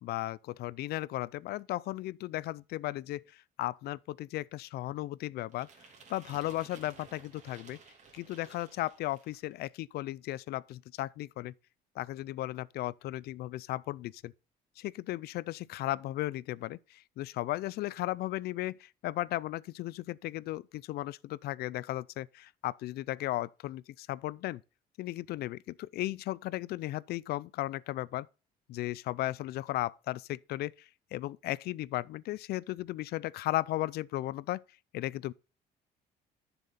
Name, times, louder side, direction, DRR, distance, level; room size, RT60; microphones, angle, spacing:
voice 1, 0.0-5.7 6.1-7.8 8.1-11.5 12.0-14.3 14.8-24.6 25.0-28.3 28.7-34.6 34.9-35.3, left 16 dB, 70° left, 0.4 m, -36 dB
sound 1, 5.5-9.5, right 5 dB, 45° right, 2.8 m, -55 dB
9.9 x 7.0 x 4.0 m
cardioid pair, 110°, 17 cm